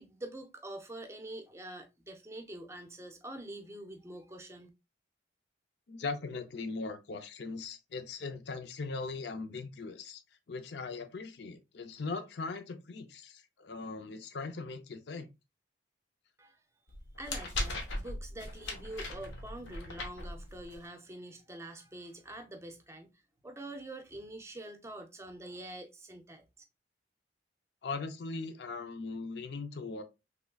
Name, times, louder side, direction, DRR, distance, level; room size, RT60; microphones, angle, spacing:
voice 1, 0.0-4.7 16.4-16.6 17.2-23.1 23.4-26.5, right 1 dB, 15° right, 0.5 m, -45 dB
voice 2, 5.9-10.2 10.5-15.3 27.8-30.0, left 4 dB, 65° left, 0.5 m, -39 dB
sound 1, 16.9-20.9, left 2 dB, 85° left, 0.9 m, -39 dB
3.6 x 3.1 x 2.3 m
head